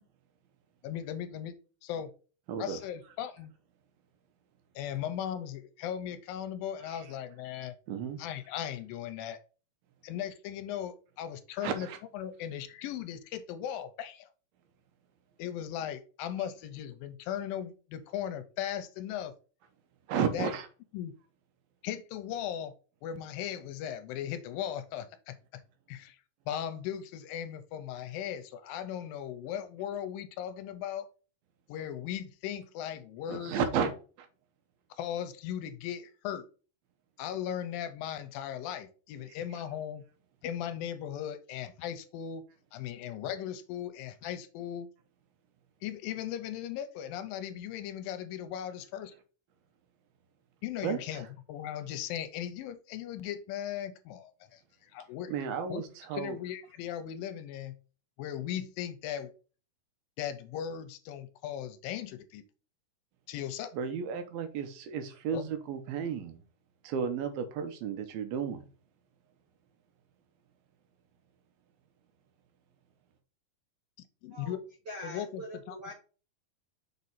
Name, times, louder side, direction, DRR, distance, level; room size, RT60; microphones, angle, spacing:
voice 1, 0.8-1.6 1.8-2.1 2.6-3.5 4.8-7.8 8.2-9.4 10.0-11.9 12.1-14.3 15.4-19.3 20.1-20.5 20.9-21.1 21.8-22.7 23.0-25.4 25.9-26.2 26.5-31.1 31.7-33.6 35.0-36.5 37.2-40.0 40.4-42.4 42.7-44.9 45.8-49.1 50.6-55.3 55.7-55.8 56.1-57.7 58.2-59.3 60.2-62.4 63.3-63.7 65.3-65.5 74.2-74.6 75.0-75.8, left 10 dB, 80° left, 2.2 m, -38 dB
voice 2, 2.5-2.8 7.9-8.2 11.6-12.0 20.1-20.6 33.3-33.9 34.2-34.3 50.8-51.0 55.3-56.4 63.7-66.4 66.8-68.6, right 7 dB, 85° right, 2.8 m, -33 dB
voice 3, 74.8-75.9, equal, 55° right, 1.1 m, -43 dB
6.5 x 4.1 x 4.0 m
omnidirectional pair, 4.3 m